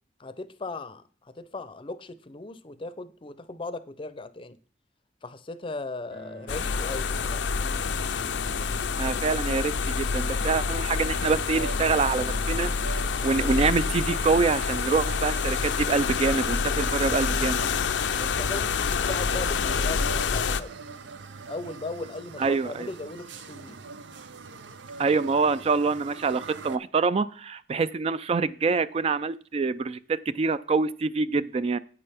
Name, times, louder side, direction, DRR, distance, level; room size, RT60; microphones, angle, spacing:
voice 1, 0.2-4.6 5.2-7.5 18.2-20.7 21.5-23.8, left 2 dB, 30° left, 0.6 m, -38 dB
sound 1, 6.1-14.1, right 1 dB, 75° right, 4.0 m, -47 dB
sound 2, 6.5-20.6, left 5 dB, 85° left, 0.5 m, -27 dB
voice 2, 9.0-12.7 13.2-17.6 22.4-22.9 25.0-31.8, right 4 dB, 35° right, 0.3 m, -26 dB
sound 3, 11.0-26.8, right 4 dB, 90° right, 0.6 m, -43 dB
9.8 x 8.6 x 3.5 m
head